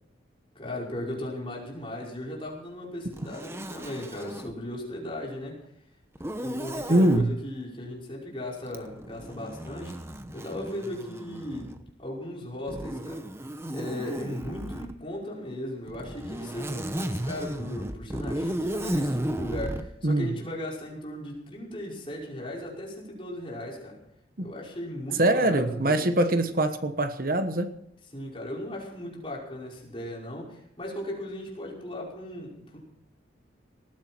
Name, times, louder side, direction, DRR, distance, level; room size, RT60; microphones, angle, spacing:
voice 1, 0.6-5.6 6.4-9.9 10.3-11.7 12.0-13.2 13.7-24.0 24.4-26.0 28.1-32.8, left 1 dB, 25° left, -3 dB, 5.5 m, -37 dB
Zipper (clothing), 3.1-4.5 6.1-7.2 8.7-11.9 12.7-14.9 15.9-19.9, right 1 dB, 15° right, 0.9 m, -34 dB
voice 2, 6.9-7.4 20.0-20.3 24.4-24.5 25.2-27.7, right 1 dB, 45° right, 8 dB, 1.2 m, -23 dB
19.5 x 15.0 x 4.5 m, 0.75 s
head